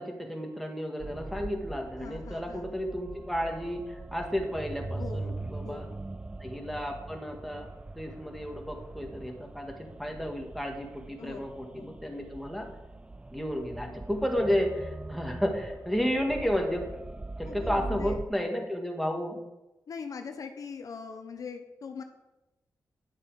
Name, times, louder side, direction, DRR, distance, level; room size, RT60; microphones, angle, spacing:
voice 1, 0.0-5.9 6.4-7.7 7.9-12.7 13.3-16.8 17.4-19.4, equal, ahead, 2 dB, 1.7 m, -32 dB
sound 1, 1.0-18.3, right 2 dB, 15° right, 0.4 m, -41 dB
voice 2, 2.0-2.7 4.9-6.0 11.2-11.4 11.7-11.9 17.4-18.2 19.9-22.0, left 5 dB, 60° left, 7 dB, 0.9 m, -41 dB
10.5 x 7.3 x 4.8 m, 0.99 s
wide cardioid pair, 110°, 7 cm